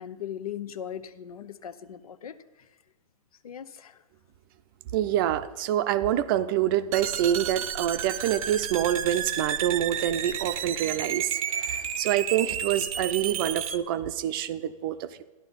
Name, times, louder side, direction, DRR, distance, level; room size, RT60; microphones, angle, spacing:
voice 1, 0.0-2.7 3.4-4.0, left 9 dB, 85° left, 12 dB, 0.8 m, -39 dB
voice 2, 4.9-15.2, right 11 dB, 40° right, 12 dB, 0.6 m, -26 dB
sound 1, 6.9-13.8, right 8 dB, 70° right, 0.8 m, -32 dB
12.5 x 11.0 x 4.1 m, 1.3 s
hypercardioid pair, 150°, 18 cm